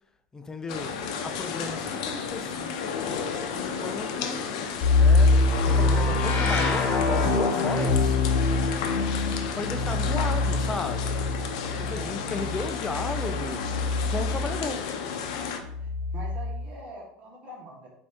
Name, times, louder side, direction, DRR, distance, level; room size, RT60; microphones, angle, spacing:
voice 1, 0.3-3.2 3.5-4.5 4.9-5.4 5.6-8.2 9.5-11.2 11.8-13.7 14.1-14.9, left 3 dB, 15° left, 0.4 m, -35 dB
sound 1, 0.7-15.6, left 6 dB, 75° left, 0.5 m, -33 dB
sound 2, 4.8-14.6 15.6-16.7, left 3 dB, 50° left, 0.8 m, -24 dB
voice 2, 8.8-9.2 11.9-12.2 15.8-17.9, right 1 dB, 40° right, 1.2 m, -43 dB
4.9 x 2.6 x 3.4 m
supercardioid pair, 115°, 4 cm